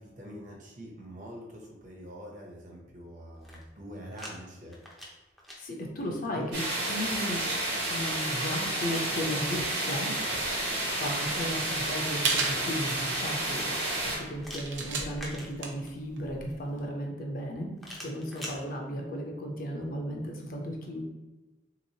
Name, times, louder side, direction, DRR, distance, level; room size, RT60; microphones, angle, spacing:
voice 1, 0.0-4.8 6.0-6.5, equal, 45° right, -1 dB, 0.7 m, -44 dB
sound 1, 3.3-4.3 4.7-5.6 7.3-9.2 11.1-12.9 14.4-16.0 17.8-18.6, equal, ahead, 0.4 m, -46 dB
voice 2, 5.6-7.4 7.9-10.5 11.0-17.7 18.0-21.0, equal, 45° left, 0 dB, 0.6 m, -35 dB
sound 2, 6.5-14.2, right 1 dB, 65° right, 1.2 m, -31 dB
sound 3, 10.4-16.8, right 4 dB, 80° right, 0.6 m, -36 dB
3.5 x 2.9 x 2.7 m, 1.1 s
head